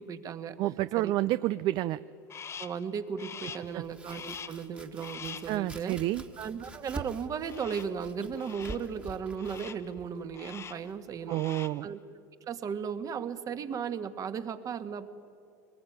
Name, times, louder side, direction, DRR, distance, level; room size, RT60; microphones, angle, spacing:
voice 1, 0.0-0.6 0.9-1.1 2.6-6.0 6.4-12.0 12.5-15.1, right 7 dB, 40° right, 10 dB, 1.7 m, -36 dB
voice 2, 0.6-2.0 3.6-3.8 5.5-6.2 11.3-11.9, right 15 dB, 55° right, 15 dB, 0.5 m, -29 dB
Crow, 2.3-2.9 3.2-3.8 4.1-4.7 5.0-5.6 7.5-8.0 8.4-8.9 9.4-9.9 10.3-10.9 11.2-11.9, left 7 dB, 30° left, 0.9 m, -44 dB
Domestic sounds home sounds, 3.6-11.4, right 2 dB, 10° right, 1.7 m, -47 dB
23.5 x 20.5 x 9.4 m, 2.4 s
hypercardioid pair, 90°, 10 cm